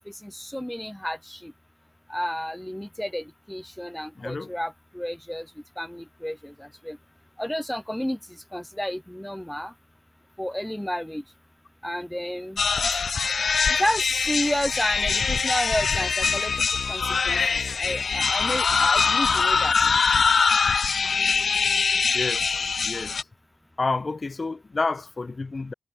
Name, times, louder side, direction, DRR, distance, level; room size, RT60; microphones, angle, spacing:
voice 1, 0.0-1.5 2.1-7.0 7.4-9.7 10.4-11.2 11.8-12.6 13.7-19.8, equal, 5° left, 0.7 m, -31 dB
voice 2, 4.1-4.5 22.1-23.3 23.8-25.7, left 3 dB, 45° left, 1.0 m, -30 dB
sound 1, 12.6-23.2, left 5 dB, 65° left, 0.6 m, -23 dB
cardioid pair, 45°, 0 cm